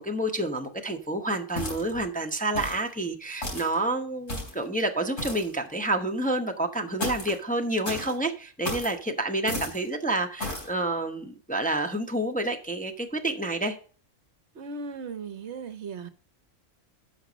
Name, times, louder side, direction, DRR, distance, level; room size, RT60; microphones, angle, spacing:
voice 1, 0.0-13.8, right 1 dB, 5° left, 0.8 m, -29 dB
sound 1, 1.6-2.0 2.6-2.9 3.4-3.7 4.3-4.6 5.2-5.5 7.0-7.4 7.8-8.1 8.6-8.9 9.5-9.8 10.4-10.7, left 1 dB, 70° left, 4.1 m, -33 dB
voice 2, 14.5-16.1, right 4 dB, 60° right, 1.0 m, -37 dB
11.5 x 6.1 x 4.0 m
omnidirectional pair, 1.3 m